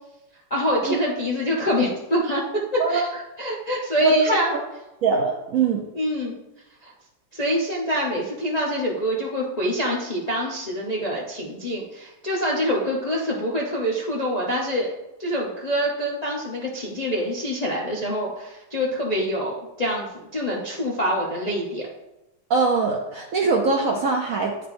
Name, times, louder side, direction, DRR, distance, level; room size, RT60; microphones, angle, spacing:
voice 1, 0.5-2.4 2.7-3.1 3.4-4.5 5.9-6.4 6.8-6.9 7.3-14.9 15.2-21.9, equal, 40° left, -4 dB, 0.5 m, -25 dB
voice 2, 4.0-4.6 5.0-5.9 22.5-24.7, right 4 dB, 65° right, 1 dB, 0.8 m, -22 dB
10.0 x 4.4 x 2.6 m, 0.94 s
omnidirectional pair, 2.0 m